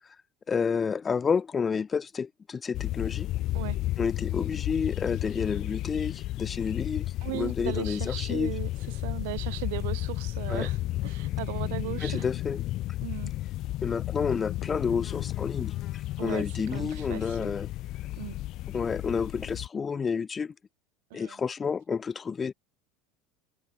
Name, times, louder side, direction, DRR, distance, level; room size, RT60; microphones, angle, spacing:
voice 1, 0.5-3.3 4.0-7.1 7.3-8.5 10.5-10.7 12.0-12.6 13.8-15.7 16.2-17.7 18.7-20.5 21.1-22.5, left 6 dB, 25° left, 1.8 m, -30 dB
sound 1, 2.7-19.7, left 16 dB, 55° left, 2.0 m, -33 dB
voice 2, 7.2-12.3 13.0-13.3 16.2-17.6 18.2-18.4 21.1-21.4, right 25 dB, 75° right, 3.8 m, -37 dB
supercardioid pair, 105°, 0 cm